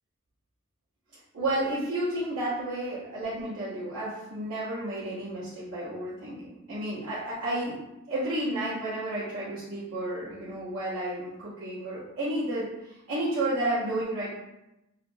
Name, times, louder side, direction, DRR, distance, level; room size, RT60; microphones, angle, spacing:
voice 1, 1.3-7.8 8.1-14.3, right 1 dB, 75° right, -13 dB, 1.0 m, -31 dB
2.9 x 2.5 x 2.6 m, 0.91 s
head